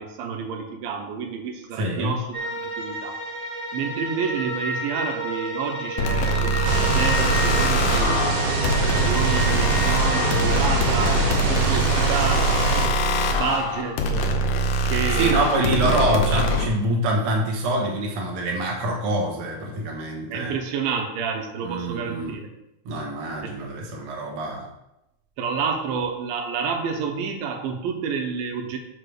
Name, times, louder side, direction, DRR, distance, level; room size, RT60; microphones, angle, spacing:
voice 1, 0.0-3.2 3.7-8.2 8.8-12.5 13.3-14.3 14.9-16.0 20.3-22.5 23.4-23.5 25.4-28.8, right 6 dB, 85° right, 3 dB, 2.8 m, -29 dB
voice 2, 1.8-2.1 15.1-20.5 21.6-22.4 22.8-24.7, right 1 dB, 50° right, -1 dB, 2.0 m, -25 dB
sound 1, 2.3-11.1, right 1 dB, 30° right, 1.5 m, -31 dB
sound 2, 6.0-16.7, equal, 75° left, 2.4 m, -23 dB
sound 3, 6.6-12.9, right 3 dB, 70° right, 3.0 m, -24 dB
7.1 x 4.9 x 6.5 m, 0.89 s
omnidirectional pair, 4.0 m